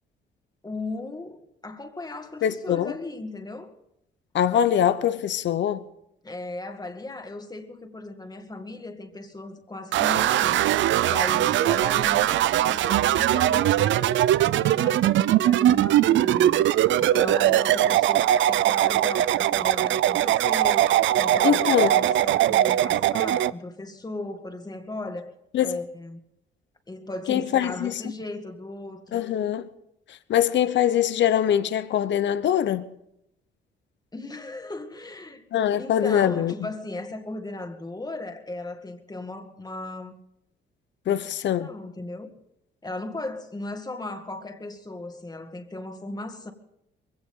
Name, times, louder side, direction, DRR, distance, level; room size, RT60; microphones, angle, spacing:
voice 1, 0.6-3.7 6.2-10.6 11.1-16.7 17.0-25.3 25.6-26.2 26.9-29.2 34.1-35.4 35.8-40.2 41.1-41.2 41.6-42.3 42.8-46.5, left 2 dB, 20° left, 2.1 m, -37 dB
voice 2, 2.4-2.9 4.3-5.8 21.4-21.9 25.5-25.8 27.3-28.0 29.1-29.7 30.1-32.9 35.5-36.5 41.1-41.7, left 10 dB, 65° left, 0.9 m, -23 dB
sound 1, 9.9-23.5, right 12 dB, 70° right, 0.5 m, -21 dB
21.5 x 17.0 x 3.8 m
cardioid pair, 90°, 20 cm